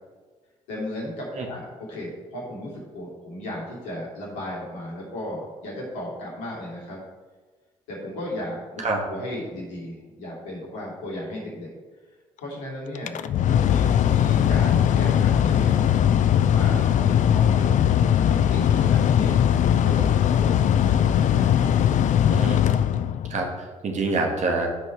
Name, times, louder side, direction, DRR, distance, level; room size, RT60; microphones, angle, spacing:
voice 1, 0.7-7.0 7.9-11.7 12.4-13.2 13.6-15.9 16.3-17.8 18.2-19.4 19.8-20.9 21.3-21.8, left 1 dB, 75° left, -5 dB, 2.9 m, -35 dB
Mechanical fan, 13.0-23.5, left 9 dB, 45° left, 0.5 m, -20 dB
voice 2, 22.3-22.6 23.3-24.7, right 3 dB, 45° right, 1 dB, 1.9 m, -26 dB
12.5 x 5.4 x 3.4 m, 1.4 s
figure-of-eight pair, 45°, 17 cm